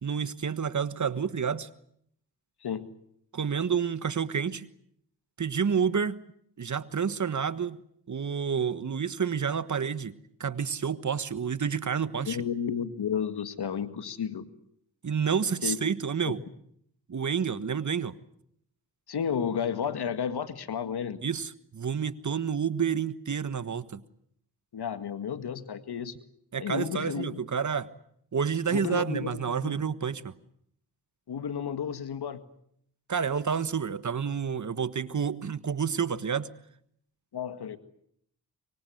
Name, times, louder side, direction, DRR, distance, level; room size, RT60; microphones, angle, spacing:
voice 1, 0.0-1.7 3.3-4.7 5.4-6.2 6.6-7.8 8.1-12.4 15.0-16.4 17.1-18.1 21.2-24.0 26.5-27.9 28.3-30.3 33.1-36.5, right 6 dB, 45° right, 14 dB, 1.4 m, -29 dB
voice 2, 12.3-14.5 15.6-15.8 16.2-16.3 19.1-21.2 24.7-26.2 26.6-27.4 28.7-29.8 31.3-32.4 37.3-37.8, left 7 dB, 65° left, 11 dB, 2.0 m, -32 dB
25.0 x 23.5 x 7.9 m, 0.71 s
supercardioid pair, 50°, 41 cm